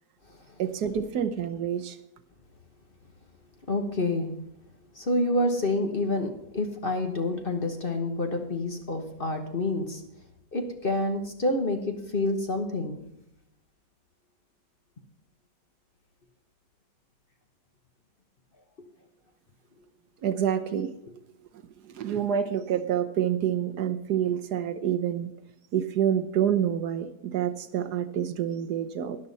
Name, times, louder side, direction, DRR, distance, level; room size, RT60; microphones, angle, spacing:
voice 1, 0.6-2.0 20.2-20.9 21.8-25.3 25.7-29.2, right 9 dB, 70° right, 10 dB, 1.3 m, -27 dB
voice 2, 3.7-4.3 4.9-10.0 10.5-13.0, left 2 dB, 35° left, 5 dB, 1.3 m, -28 dB
12.5 x 11.0 x 4.1 m, 0.87 s
omnidirectional pair, 1.9 m